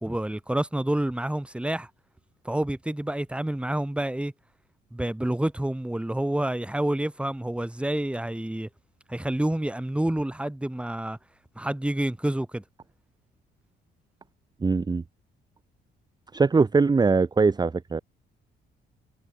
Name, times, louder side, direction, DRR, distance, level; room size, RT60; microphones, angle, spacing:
voice 1, 0.0-1.9 2.4-4.3 4.9-8.7 9.1-11.2 11.6-12.6, right 1 dB, 5° right, 1.4 m, -28 dB
voice 2, 14.6-15.0 16.3-18.0, right 4 dB, 20° right, 0.8 m, -21 dB
cardioid pair, 90°, 20 cm